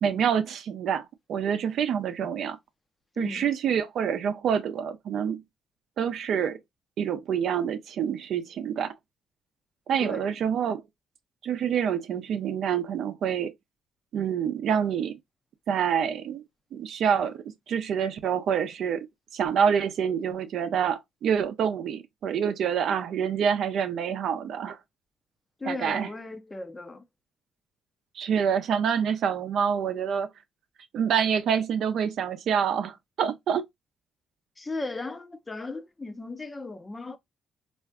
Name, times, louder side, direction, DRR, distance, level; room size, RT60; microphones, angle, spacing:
voice 1, 0.0-2.6 3.2-5.4 6.0-6.6 7.0-8.9 9.9-10.8 11.4-13.5 14.1-15.2 15.7-16.4 16.7-19.1 19.3-24.8 25.6-26.1 28.2-30.3 30.9-33.6, right 8 dB, 70° right, 0.5 m, -27 dB
voice 2, 3.2-3.5 10.0-10.3 25.6-27.0 34.6-37.2, left 2 dB, 20° left, 0.5 m, -36 dB
3.3 x 2.5 x 2.3 m
cardioid pair, 90°, 0 cm